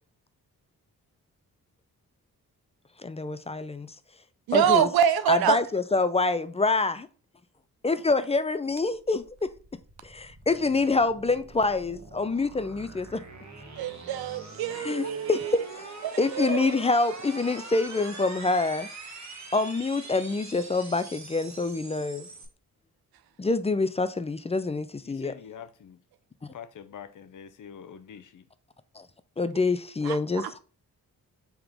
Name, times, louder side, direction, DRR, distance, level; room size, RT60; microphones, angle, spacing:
voice 1, 3.0-3.9 4.5-4.9 5.3-7.1 7.8-9.5 10.0-13.2 14.7-18.9 19.5-22.3 23.4-25.3 26.4-26.5 29.0-29.1 29.4-30.6, left 3 dB, 20° left, 0.4 m, -26 dB
voice 2, 4.5-5.6 13.8-15.6 16.0-16.7 30.0-30.2 30.4-30.5, right 9 dB, 75° right, 0.5 m, -25 dB
sound 1, 8.7-22.5, right 3 dB, 45° right, 1.2 m, -44 dB
voice 3, 25.0-26.0 26.5-28.5, left 8 dB, 55° left, 0.6 m, -45 dB
3.6 x 2.9 x 4.8 m
cardioid pair, 55°, 37 cm